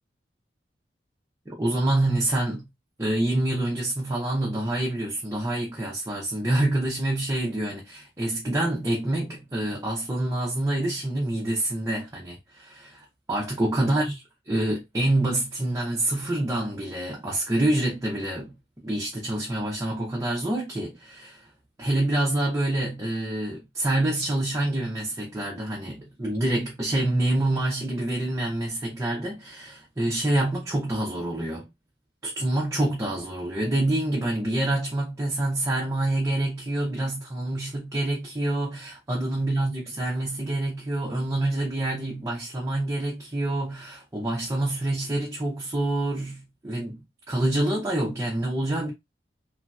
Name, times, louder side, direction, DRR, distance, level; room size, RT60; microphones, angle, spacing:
voice 1, 1.5-2.7 3.0-18.5 18.8-21.5 21.8-31.7 32.2-47.0 47.3-48.9, right 1 dB, 15° right, 0.6 m, -27 dB
3.0 x 2.7 x 2.3 m
head